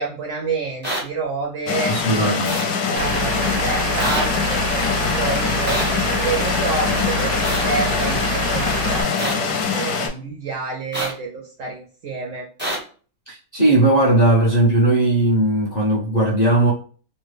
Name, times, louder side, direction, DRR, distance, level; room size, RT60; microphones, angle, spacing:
voice 1, 0.0-1.9 2.8-5.8 6.2-12.5, right 4 dB, 70° right, 0.8 m, -28 dB
sound 1, 0.8-1.0 2.5-2.6 4.0-4.2 5.7-5.9 7.4-7.6 9.2-9.3 10.9-11.1 12.6-12.8, right 1 dB, 15° right, 0.3 m, -25 dB
sound 2, 1.7-10.1, left 6 dB, 70° left, 1.1 m, -23 dB
voice 2, 1.9-2.6 13.3-16.7, right 1 dB, 45° left, 0.5 m, -17 dB
Truck / Idling, 3.0-9.0, right 3 dB, 85° right, 1.2 m, -26 dB
3.1 x 2.2 x 3.2 m
omnidirectional pair, 1.8 m